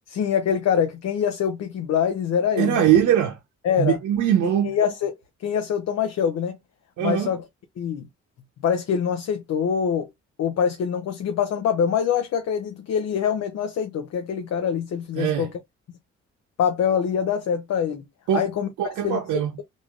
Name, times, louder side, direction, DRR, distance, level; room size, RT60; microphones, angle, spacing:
voice 1, 0.1-2.9 3.6-4.0 4.6-5.1 5.4-6.6 7.0-7.4 7.8-8.1 8.6-10.1 10.4-15.5 16.6-18.0 18.3-18.7 19.0-19.2, left 8 dB, 60° left, 0.6 m, -24 dB
voice 2, 2.6-3.4 3.8-4.8 7.0-7.3 15.2-15.5 18.3-18.5 18.8-19.6, right 10 dB, 80° right, 0.7 m, -21 dB
3.0 x 2.7 x 2.3 m
cardioid pair, 90°, 30 cm